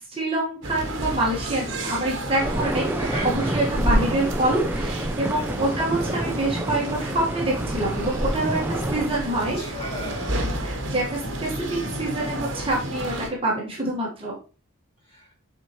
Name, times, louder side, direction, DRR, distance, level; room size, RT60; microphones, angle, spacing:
voice 1, 0.0-9.6 10.6-14.3, right 1 dB, 25° right, 1.5 m, -26 dB
sound 1, 0.6-13.3, right 1 dB, 55° right, 1.3 m, -31 dB
sound 2, 2.4-9.1, right 1 dB, 10° right, 0.5 m, -28 dB
voice 2, 3.0-3.6 5.5-5.7 9.4-10.5 15.0-15.3, equal, 25° left, 2.6 m, -36 dB
7.4 x 4.5 x 3.0 m
head